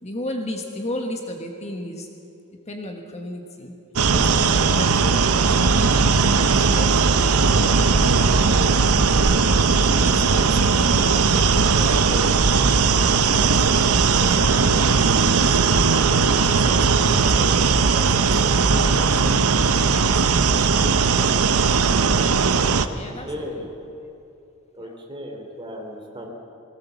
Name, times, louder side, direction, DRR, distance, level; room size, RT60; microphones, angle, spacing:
voice 1, 0.0-2.1 2.7-3.7 4.1-5.9 6.3-7.1 7.4-9.0 9.7-12.4 12.8-13.7 14.1-20.2 22.9-23.7 24.8-24.9, left 1 dB, 30° left, 3 dB, 1.4 m, -35 dB
sound 1, 4.0-22.9, right 4 dB, 80° right, 0.8 m, -18 dB
voice 2, 23.3-23.7 24.8-26.3, equal, 25° right, 1 dB, 3.2 m, -35 dB
20.5 x 18.5 x 7.1 m, 2.7 s
head